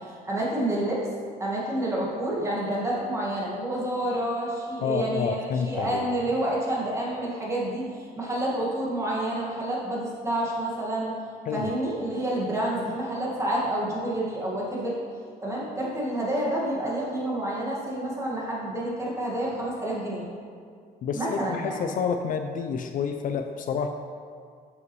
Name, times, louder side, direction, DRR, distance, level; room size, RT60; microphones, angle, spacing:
voice 1, 0.2-1.1 1.4-5.4 5.6-11.2 11.5-15.0 15.4-20.2 21.1-21.9, right 1 dB, 15° right, -5 dB, 1.7 m, -29 dB
voice 2, 4.8-6.0 11.5-11.7 21.0-23.9, left 6 dB, 55° left, 6 dB, 0.4 m, -29 dB
7.3 x 5.6 x 3.1 m, 2.1 s
cardioid pair, 110°, 17 cm